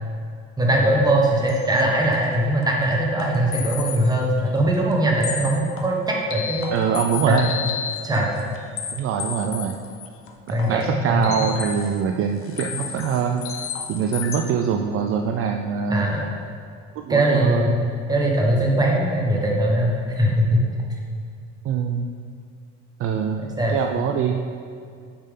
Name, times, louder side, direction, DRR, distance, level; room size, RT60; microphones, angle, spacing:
voice 1, 0.6-6.7 7.2-7.5 8.0-8.3 10.5-11.4 15.9-16.3 17.1-17.8 18.1-20.6 23.6-23.8, right 1 dB, 15° right, -2 dB, 1.3 m, -21 dB
sound 1, 1.5-1.8 2.1-2.2 2.6-2.7 3.2-4.1 4.4-4.5 4.9-5.0 5.2-12.0 12.4-14.4, left 8 dB, 50° left, 0.8 m, -32 dB
voice 2, 6.7-7.5 8.9-9.8 10.5-13.6 13.9-16.1 17.0-17.7 21.6-22.1 23.0-24.4, right 7 dB, 50° right, 4 dB, 0.5 m, -24 dB
8.7 x 5.5 x 3.7 m, 2.3 s
cardioid pair, 120°, 29 cm